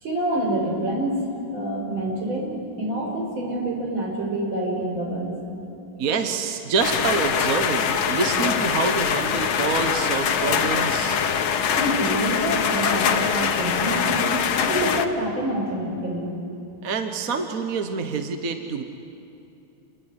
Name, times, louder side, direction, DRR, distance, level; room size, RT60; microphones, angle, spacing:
voice 1, 0.0-1.2 1.5-5.4 11.7-16.3, right 1 dB, 70° right, -1 dB, 6.0 m, -27 dB
voice 2, 6.0-11.2 16.8-18.8, right 5 dB, 45° right, 6 dB, 1.5 m, -26 dB
sound 1, 6.8-15.1, left 7 dB, 85° left, 2.0 m, -23 dB
28.0 x 21.5 x 9.8 m, 2.7 s
omnidirectional pair, 2.2 m